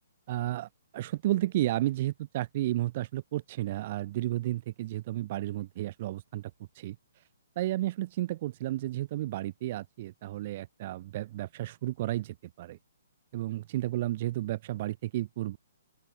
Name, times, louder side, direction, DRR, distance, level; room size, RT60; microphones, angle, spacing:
voice 1, 0.3-6.5 6.8-7.0 7.6-12.8 13.3-15.6, right 15 dB, 25° right, 1.9 m, -32 dB
open air
hypercardioid pair, 180°, 0 cm